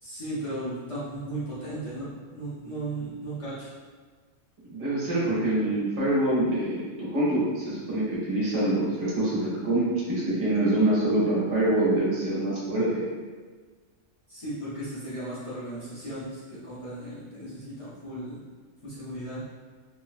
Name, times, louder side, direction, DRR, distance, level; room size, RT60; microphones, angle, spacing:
voice 1, 0.0-3.7 14.3-18.4 18.8-19.4, right 1 dB, 35° left, -11 dB, 0.7 m, -36 dB
voice 2, 4.6-13.0, right 1 dB, 85° right, -7 dB, 1.2 m, -25 dB
3.0 x 2.1 x 2.4 m, 1.4 s
omnidirectional pair, 1.2 m